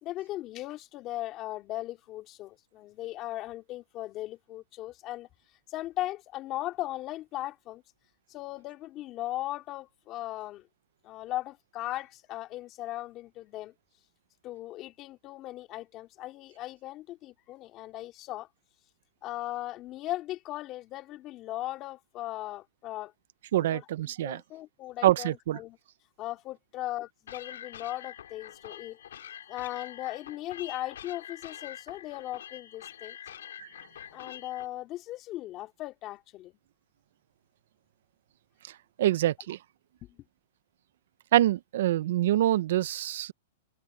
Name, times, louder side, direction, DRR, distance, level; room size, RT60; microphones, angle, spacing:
voice 1, 0.0-5.3 5.7-7.8 8.3-10.7 11.0-13.7 14.4-18.5 19.2-23.1 23.5-25.8 26.2-29.0 29.5-33.2 34.1-36.5 40.1-40.2, left 15 dB, 30° left, 3.1 m, -38 dB
voice 2, 23.5-24.4 25.0-25.6 33.6-33.7 39.0-39.6 41.3-43.3, right 13 dB, 65° right, 0.8 m, -25 dB
sound 1, 27.3-34.7, left 10 dB, 80° left, 4.2 m, -45 dB
hypercardioid pair, 150°, 0 cm